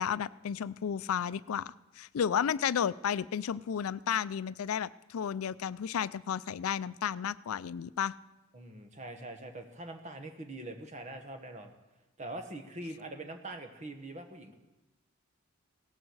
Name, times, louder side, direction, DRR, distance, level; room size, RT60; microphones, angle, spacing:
voice 1, 0.0-8.1, left 8 dB, 90° left, 18 dB, 0.4 m, -32 dB
voice 2, 8.5-11.7 12.2-14.6, right 2 dB, 35° right, 5 dB, 1.4 m, -43 dB
17.0 x 14.0 x 4.7 m, 1.1 s
head